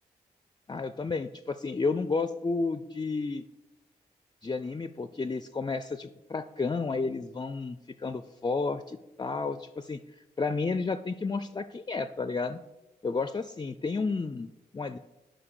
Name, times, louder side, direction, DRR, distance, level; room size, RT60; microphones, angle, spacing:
voice 1, 0.7-3.4 4.4-12.6 13.0-15.0, left 4 dB, 25° left, 12 dB, 0.4 m, -32 dB
7.5 x 5.1 x 6.2 m, 1.0 s
supercardioid pair, 40°, 17 cm